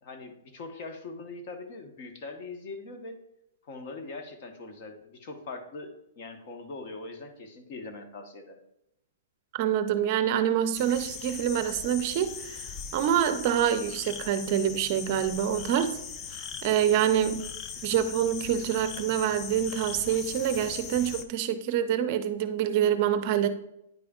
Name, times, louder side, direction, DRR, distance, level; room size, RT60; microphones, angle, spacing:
voice 1, 0.0-3.2 3.6-8.6, left 3 dB, 45° left, 1.0 m, -42 dB
voice 2, 9.5-12.7 12.9-15.9 16.3-17.5 17.8-23.5, right 10 dB, 40° right, 0.5 m, -26 dB
sound 1, 10.7-21.2, left 7 dB, 25° left, 0.4 m, -40 dB
9.5 x 4.9 x 2.4 m
hypercardioid pair, 145°, 0 cm